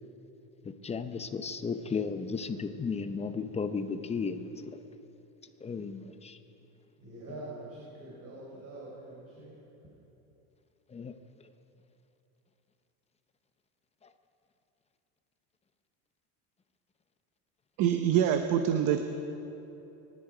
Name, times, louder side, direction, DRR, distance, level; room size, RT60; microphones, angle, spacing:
voice 1, 0.6-4.8 5.6-6.4 10.9-11.1, left 5 dB, 15° left, 9 dB, 0.7 m, -34 dB
voice 2, 7.0-9.6, right 2 dB, 35° right, -6 dB, 4.1 m, -45 dB
voice 3, 17.8-19.0, right 9 dB, 50° right, 7 dB, 1.0 m, -25 dB
24.5 x 11.0 x 5.1 m, 3.0 s
supercardioid pair, 130°, 42 cm